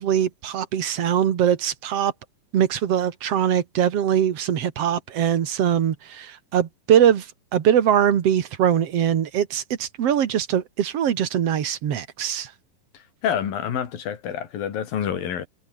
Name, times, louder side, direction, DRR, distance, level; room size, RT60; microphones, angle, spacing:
voice 1, 0.0-2.1 2.5-7.3 7.5-12.5, right 9 dB, 50° right, 2.3 m, -22 dB
voice 2, 12.9-15.5, left 9 dB, 80° left, 4.3 m, -28 dB
omnidirectional pair, 4.1 m